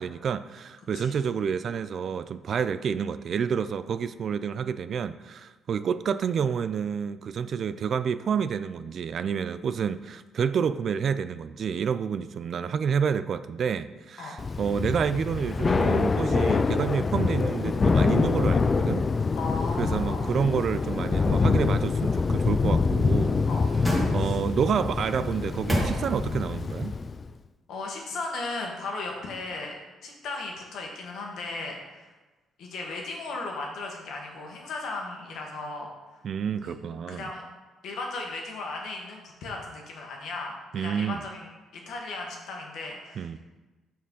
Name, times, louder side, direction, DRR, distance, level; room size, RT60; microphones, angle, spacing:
voice 1, 0.0-19.0 19.8-23.4 24.1-26.9 36.2-37.2 40.7-41.2 43.2-43.4, right 7 dB, 60° right, 13 dB, 0.3 m, -29 dB
Thunder / Rain, 14.4-27.3, left 4 dB, 35° left, 0.3 m, -25 dB
voice 2, 19.3-20.3 23.5-23.7 24.2-24.4 27.7-29.7 30.0-32.1 32.6-35.9 36.6-36.7 37.1-37.4 37.8-43.4, left 3 dB, 75° left, 0 dB, 1.4 m, -36 dB
sound 1, 23.0-24.7 25.2-26.5 26.9-27.0, equal, 5° right, 1.7 m, -31 dB
6.0 x 4.3 x 5.4 m, 1.2 s
cardioid pair, 80°, 0 cm